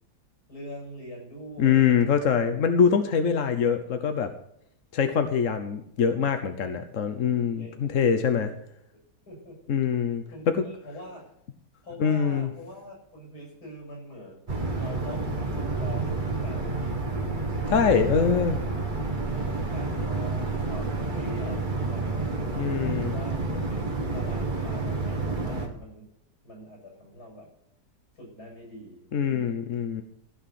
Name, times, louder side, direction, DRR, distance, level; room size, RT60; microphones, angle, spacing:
voice 1, 0.5-2.7 6.6-6.9 7.2-8.0 8.5-8.6 9.3-9.6 10.3-11.2 11.8-17.3 17.7-18.4 19.3-26.1 26.4-27.5 28.2-29.7, left 1 dB, 70° left, -2 dB, 7.9 m, -44 dB
voice 2, 1.6-4.3 4.9-8.5 9.7-10.6 12.0-12.5 17.7-18.6 22.6-23.2 29.1-30.0, left 7 dB, 55° left, 8 dB, 1.2 m, -24 dB
sound 1, 14.5-25.7, right 3 dB, 30° right, 2.0 m, -29 dB
15.5 x 6.5 x 7.6 m, 0.73 s
omnidirectional pair, 1.8 m